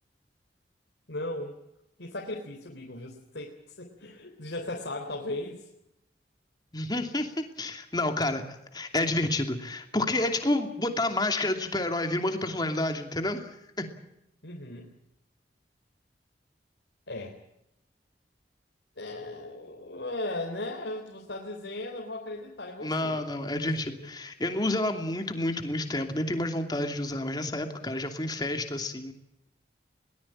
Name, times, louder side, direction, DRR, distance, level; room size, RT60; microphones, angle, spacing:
voice 1, 1.1-1.6 2.0-5.7 14.4-14.9 17.1-17.4 19.0-23.2, left 2 dB, 90° left, 0 dB, 3.6 m, -37 dB
voice 2, 6.7-8.4 8.7-13.8 22.8-29.1, left 1 dB, 25° left, 6 dB, 2.8 m, -29 dB
22.5 x 19.0 x 8.8 m, 0.84 s
head